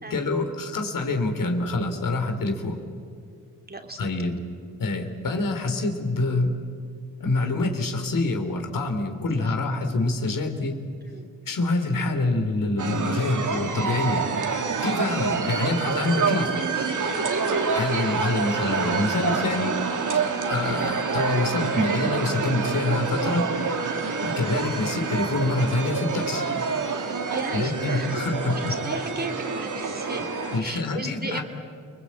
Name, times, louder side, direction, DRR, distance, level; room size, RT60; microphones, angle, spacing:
voice 1, 0.1-2.8 4.0-4.4 4.8-6.6 7.2-10.8 11.5-14.3 14.8-16.5 17.7-19.8 20.5-23.5 24.2-26.4 27.5-28.6 30.5-31.4, left 2 dB, 65° left, 5 dB, 3.4 m, -26 dB
voice 2, 3.7-4.1 9.4-9.6 11.1-11.3 14.4-14.5 17.4-17.8 24.0-24.4 27.3-28.2 28.5-30.3 30.6-31.4, right 2 dB, 25° right, 5 dB, 2.9 m, -37 dB
sound 1, 12.8-30.6, right 4 dB, 55° right, 2.8 m, -27 dB
29.5 x 20.5 x 8.6 m, 2.2 s
supercardioid pair, 55°, 36 cm